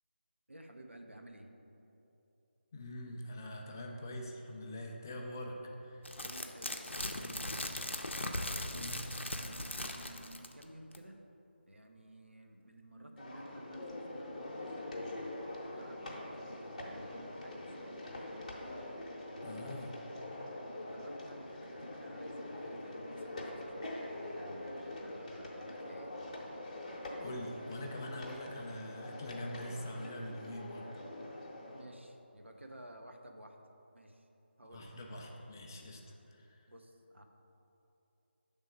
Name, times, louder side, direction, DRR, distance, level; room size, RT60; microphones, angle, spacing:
voice 1, 0.5-1.5 6.2-7.9 8.7-8.9 9.4-11.2 11.7-15.3 15.6-18.8 19.3-19.6 20.8-26.1 31.7-33.6 33.9-34.2 34.6-34.9 36.7-37.2, right 1 dB, 85° right, 3 dB, 0.7 m, -54 dB
voice 2, 2.7-6.1 8.7-9.0 19.4-19.9 26.9-30.9 34.6-36.0 36.3-36.6, left 1 dB, 15° left, 0 dB, 0.3 m, -44 dB
sound 1, 6.0-10.6 10.9-11.0, left 1 dB, 80° left, 0.6 m, -39 dB
sound 2, 13.2-31.8, left 1 dB, 35° left, 0.8 m, -44 dB
6.2 x 3.7 x 5.4 m, 2.9 s
figure-of-eight pair, 160°, 6 cm